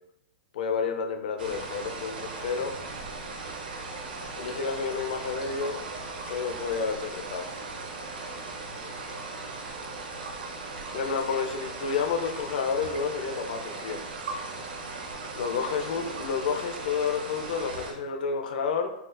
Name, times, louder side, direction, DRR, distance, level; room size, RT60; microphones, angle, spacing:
voice 1, 0.5-2.8 4.4-5.8 6.3-7.5 10.9-14.0 15.4-18.9, left 5 dB, 70° left, 6 dB, 0.4 m, -30 dB
sound 1, 1.4-17.9, right 3 dB, 80° right, 0.6 m, -38 dB
4.2 x 2.4 x 2.2 m, 0.86 s
hypercardioid pair, 125°, 5 cm